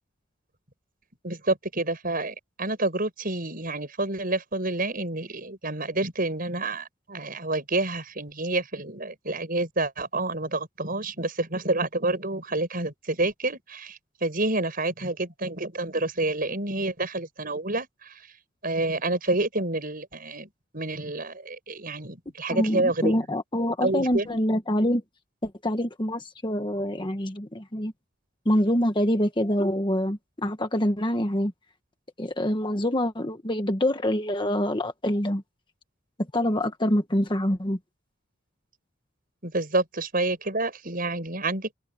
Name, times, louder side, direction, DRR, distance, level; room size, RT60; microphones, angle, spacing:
voice 1, 1.2-18.1 18.6-23.1 23.8-24.3 39.4-41.7, right 2 dB, 45° right, 6.4 m, -28 dB
voice 2, 22.5-25.0 25.4-27.9 28.4-31.5 32.2-35.4 36.3-37.8, equal, 25° left, 1.4 m, -25 dB
head